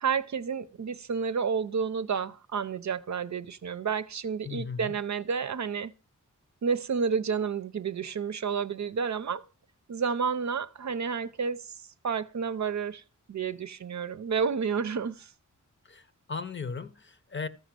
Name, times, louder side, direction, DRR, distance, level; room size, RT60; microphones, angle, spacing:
voice 1, 0.0-5.9 6.6-9.4 9.9-11.7 12.0-13.0 13.3-15.3, right 6 dB, 60° right, 0.7 m, -30 dB
voice 2, 4.5-4.9 15.9-17.5, left 5 dB, 35° left, 0.8 m, -37 dB
14.0 x 5.2 x 7.5 m
wide cardioid pair, 120°, 31 cm